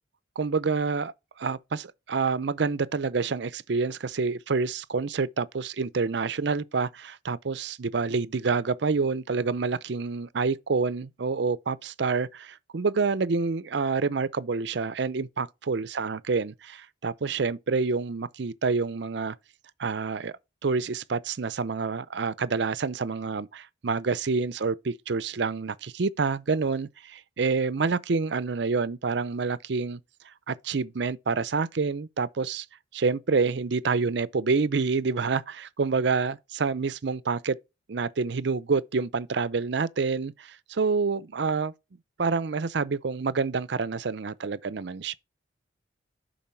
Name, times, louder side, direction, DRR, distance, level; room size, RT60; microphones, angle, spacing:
voice 1, 0.4-1.1 1.4-19.4 19.8-20.3 20.6-30.0 30.5-32.7 32.9-37.6 37.9-41.7 42.2-45.1, right 4 dB, 60° right, 0.5 m, -27 dB
7.2 x 5.3 x 4.3 m
head